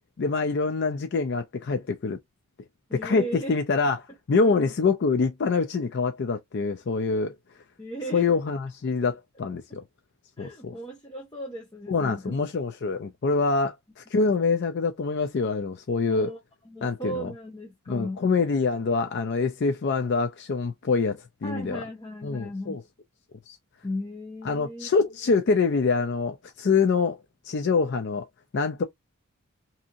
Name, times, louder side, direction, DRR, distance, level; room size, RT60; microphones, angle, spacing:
voice 1, 0.2-2.2 2.9-7.4 8.1-9.8 10.4-10.7 11.9-16.3 16.8-17.3 17.9-21.8 22.2-22.8 23.5-23.6 24.4-28.3 28.5-28.8, left 4 dB, 50° left, 0.4 m, -25 dB
voice 2, 2.9-3.6 4.5-4.6 7.8-8.2 10.4-12.4 16.1-16.4 16.7-18.2 21.4-22.8 23.8-24.9, equal, 20° left, 0.8 m, -36 dB
2.8 x 2.6 x 2.4 m
head